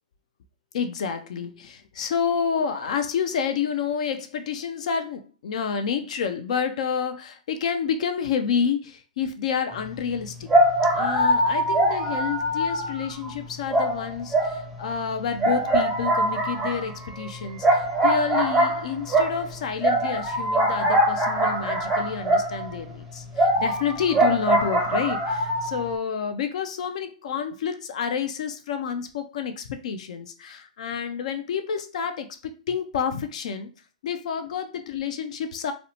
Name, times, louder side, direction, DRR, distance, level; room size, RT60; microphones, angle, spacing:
voice 1, 0.7-10.6 10.9-33.7 34.0-35.7, left 7 dB, 60° left, 8 dB, 0.4 m, -29 dB
sound 1, 9.9-10.0 10.5-13.3 13.7-15.0 15.4-22.8 23.3-26.0, right 1 dB, 10° right, 0.5 m, -23 dB
2.6 x 2.1 x 2.7 m, 0.34 s
hypercardioid pair, 135°, 4 cm